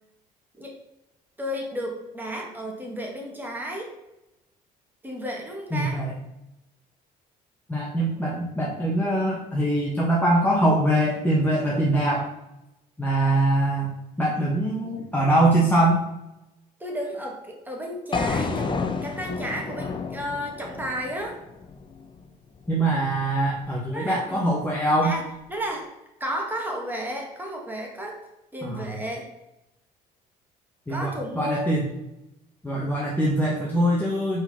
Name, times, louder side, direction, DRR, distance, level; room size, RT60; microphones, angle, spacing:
voice 1, 1.4-3.9 5.0-6.0 16.8-21.4 23.9-24.4 25.0-25.2 25.5-25.9 26.2-28.2 28.5-29.3 30.9-31.7, equal, 10° right, 0 dB, 1.8 m, -32 dB
voice 2, 5.7-6.1 7.7-12.3 13.0-16.0 22.7-25.1 28.6-28.9 30.9-31.8 32.6-34.4, right 1 dB, 10° left, -4 dB, 1.2 m, -23 dB
sound 1, 18.1-22.2, left 4 dB, 30° left, 0.7 m, -30 dB
5.4 x 4.2 x 5.7 m, 0.91 s
cardioid pair, 110°, 17 cm